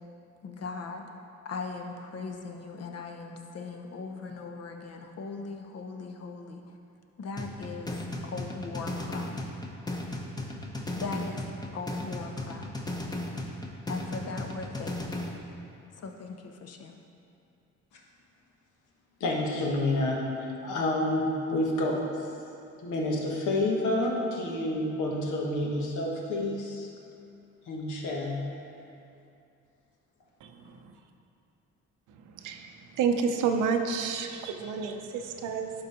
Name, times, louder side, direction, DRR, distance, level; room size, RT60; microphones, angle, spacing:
voice 1, 0.4-1.1 1.4-6.6 7.2-8.0 8.2-9.4 10.9-11.4 11.7-12.7 13.9-15.0 16.0-17.0, left 4 dB, 55° left, 4 dB, 0.9 m, -39 dB
sound 1, 7.4-15.4, left 1 dB, 15° left, 0.8 m, -36 dB
voice 2, 19.2-22.0 22.8-26.9 27.7-28.4, left 1 dB, 80° left, -1 dB, 1.4 m, -29 dB
voice 3, 30.4-30.8 32.4-35.7, right 6 dB, 90° right, 5 dB, 0.7 m, -30 dB
11.0 x 4.1 x 4.3 m, 2.6 s
cardioid pair, 90°, 30 cm